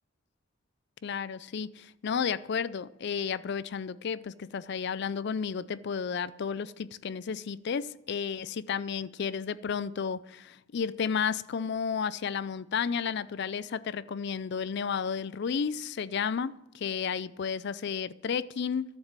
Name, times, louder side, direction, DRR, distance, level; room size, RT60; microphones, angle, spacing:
voice 1, 1.0-18.8, left 6 dB, 60° left, 0.4 m, -32 dB
12.0 x 7.4 x 7.4 m
head